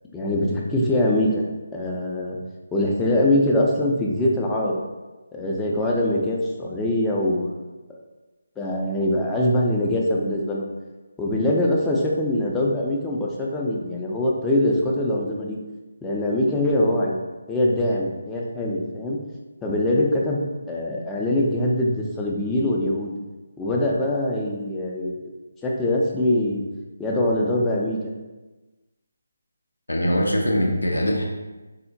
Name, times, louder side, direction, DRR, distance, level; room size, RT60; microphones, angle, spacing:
voice 1, 0.1-1.4 1.7-2.4 2.7-4.8 5.3-7.5 8.6-10.7 11.2-15.6 16.0-17.1 17.5-19.2 19.6-20.4 20.7-23.1 23.6-25.2 25.6-26.6 27.0-28.0, left 1 dB, 10° left, -3 dB, 0.4 m, -23 dB
voice 2, 29.9-31.3, equal, 80° left, -1 dB, 0.5 m, -22 dB
3.6 x 2.1 x 2.6 m, 1.2 s
figure-of-eight pair, 155°, 0 cm